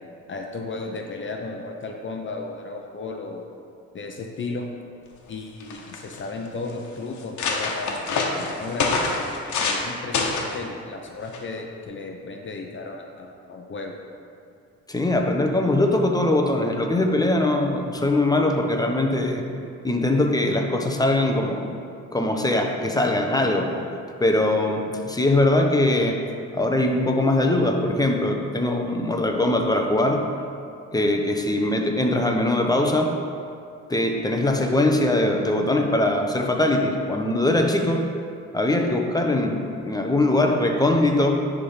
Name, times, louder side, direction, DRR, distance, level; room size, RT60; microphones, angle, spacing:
voice 1, 0.3-3.4 3.9-4.7 5.3-9.0 9.6-13.9, left 3 dB, 40° left, 2 dB, 0.8 m, -34 dB
sound 1, 5.3-5.4 5.6-6.2 6.8-6.9 7.2-9.9 10.1-10.6 11.3-11.6, left 4 dB, 75° left, 1.2 m, -26 dB
voice 2, 14.9-19.4 19.8-21.7 22.1-23.7 24.2-26.2 26.5-30.3 30.9-33.1 33.9-38.1 38.5-41.4, left 1 dB, 10° left, 2 dB, 0.9 m, -21 dB
9.9 x 3.7 x 5.7 m, 2.4 s
cardioid pair, 90°, 30 cm